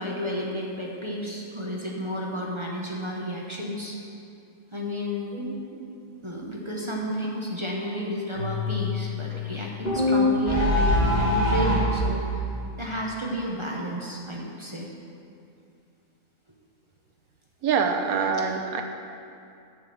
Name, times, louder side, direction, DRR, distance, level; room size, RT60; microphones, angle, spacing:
voice 1, 0.0-4.0 4.7-5.4 6.2-12.4 12.8-14.9, equal, 25° right, -3 dB, 0.8 m, -31 dB
voice 2, 5.3-5.9 17.6-18.8, right 6 dB, 75° right, 4 dB, 1.2 m, -26 dB
Keyboard (musical), 8.3-10.6, left 8 dB, 45° right, 2.1 m, -33 dB
sound 1, 9.8-12.0, left 1 dB, 25° left, 2.4 m, -22 dB
6.9 x 6.6 x 7.7 m, 2.5 s
omnidirectional pair, 1.6 m